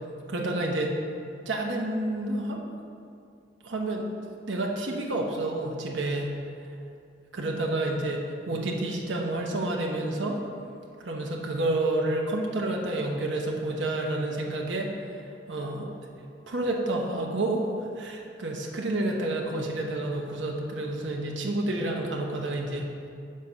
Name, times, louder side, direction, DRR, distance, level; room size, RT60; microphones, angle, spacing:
voice 1, 0.3-1.0 1.5-2.6 3.6-4.1 4.5-6.4 7.3-10.4 11.0-14.9 15.5-15.9 16.5-17.6 18.0-22.9, right 2 dB, 80° right, 0 dB, 0.9 m, -29 dB
6.5 x 4.8 x 5.6 m, 2.4 s
head